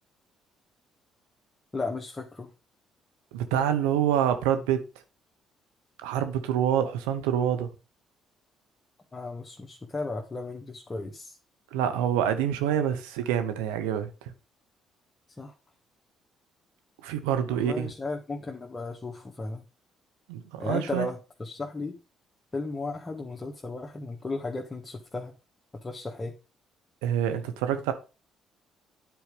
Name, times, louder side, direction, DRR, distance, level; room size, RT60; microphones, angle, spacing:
voice 1, 1.7-2.5 9.1-11.4 15.4-15.5 17.5-19.6 20.6-22.0 22.5-25.3 25.8-26.3, left 3 dB, 25° left, 1.6 m, -35 dB
voice 2, 3.3-4.8 6.0-7.7 11.7-14.1 17.0-17.9 20.3-21.1 27.0-27.9, right 9 dB, 85° right, 1.1 m, -26 dB
9.4 x 4.8 x 5.1 m
hypercardioid pair, 55°, 0 cm